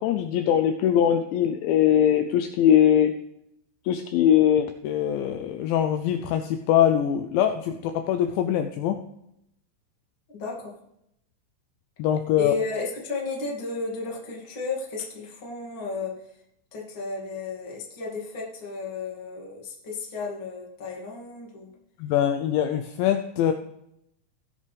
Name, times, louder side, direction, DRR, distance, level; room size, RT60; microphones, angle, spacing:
voice 1, 0.0-3.1 3.9-9.0 12.0-12.5 22.0-23.5, left 10 dB, 90° left, 7 dB, 2.6 m, -22 dB
voice 2, 10.3-10.7 12.3-16.2 16.7-21.7, left 3 dB, 40° left, -3 dB, 1.9 m, -33 dB
18.5 x 6.7 x 3.4 m, 0.79 s
omnidirectional pair, 5.9 m